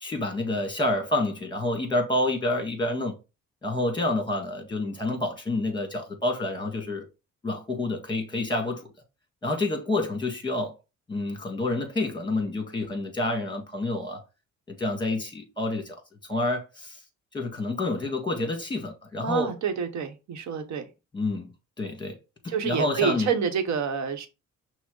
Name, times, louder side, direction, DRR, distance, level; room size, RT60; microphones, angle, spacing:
voice 1, 0.0-3.1 3.6-7.1 7.4-8.8 9.4-10.7 11.1-14.2 14.7-16.0 16.3-17.0 17.3-19.5 21.1-21.5 21.8-22.2 22.4-23.3, left 2 dB, 15° left, 1.6 m, -28 dB
voice 2, 19.2-20.8 22.5-24.3, right 7 dB, 70° right, 0.9 m, -28 dB
6.0 x 2.0 x 3.7 m
cardioid pair, 90°, 30 cm